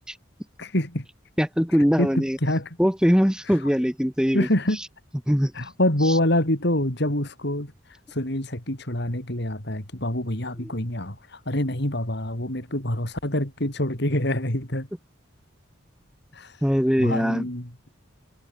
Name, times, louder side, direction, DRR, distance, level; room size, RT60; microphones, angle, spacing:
voice 1, 0.6-1.0 2.0-2.8 3.5-3.7 4.3-4.8 5.5-7.7 8.1-14.9 16.3-16.6 17.0-17.7, left 1 dB, 55° left, 4.9 m, -26 dB
voice 2, 1.4-2.4 2.8-4.5 5.3-5.5 16.6-17.4, equal, 5° right, 3.1 m, -21 dB
head